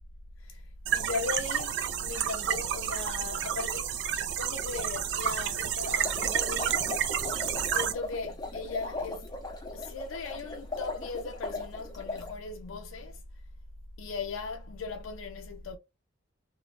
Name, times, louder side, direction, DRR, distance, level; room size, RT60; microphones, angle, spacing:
voice 1, 0.4-3.9 4.3-7.0 7.7-9.3 9.7-13.2 14.0-15.8, left 4 dB, 85° left, 0.4 m, -38 dB
sound 1, 0.9-7.9, right 9 dB, 60° right, 0.3 m, -30 dB
sound 2, 5.9-12.3, left 3 dB, 20° left, 0.6 m, -38 dB
3.1 x 2.1 x 2.4 m
head